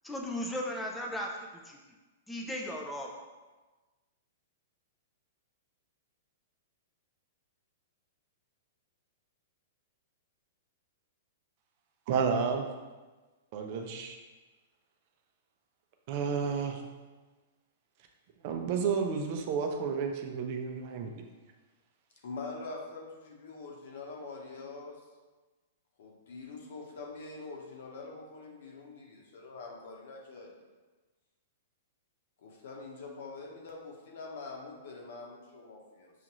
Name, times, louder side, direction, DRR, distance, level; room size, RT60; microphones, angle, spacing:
voice 1, 0.0-1.8 2.3-3.2, equal, 5° left, -1 dB, 0.5 m, -36 dB
voice 2, 12.1-12.7 13.5-14.2 16.1-16.8 18.4-21.2, right 6 dB, 45° right, 4 dB, 0.5 m, -31 dB
voice 3, 22.2-24.9 26.0-30.5 32.4-36.1, left 3 dB, 70° left, -1 dB, 1.0 m, -44 dB
5.8 x 2.5 x 3.0 m, 1.2 s
hypercardioid pair, 140°, 0 cm